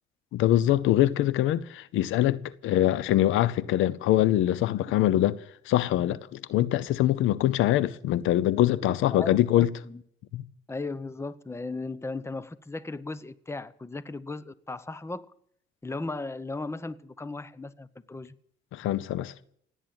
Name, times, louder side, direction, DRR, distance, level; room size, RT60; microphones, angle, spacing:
voice 1, 0.3-5.4 5.7-9.7 10.3-10.4 18.7-19.3, left 13 dB, 90° left, 0.7 m, -24 dB
voice 2, 8.8-10.0 10.7-15.3 15.8-18.3, left 3 dB, 15° left, 0.8 m, -36 dB
17.0 x 9.3 x 8.7 m
cardioid pair, 90°, 20 cm